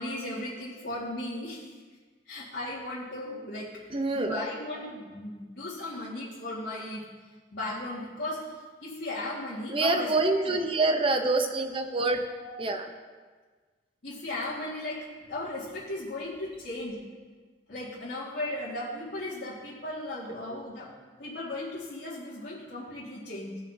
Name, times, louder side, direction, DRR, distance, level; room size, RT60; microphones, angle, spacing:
voice 1, 0.0-1.7 2.3-3.7 4.1-7.0 7.5-8.5 8.8-10.6 12.4-12.5 14.0-17.0 17.7-20.9 21.2-23.6, left 1 dB, 75° left, -10 dB, 2.0 m, -36 dB
voice 2, 3.9-4.4 9.7-12.2 12.6-12.9 20.5-20.6, right 2 dB, 30° right, 4 dB, 0.8 m, -26 dB
16.5 x 5.7 x 2.8 m, 1.4 s
head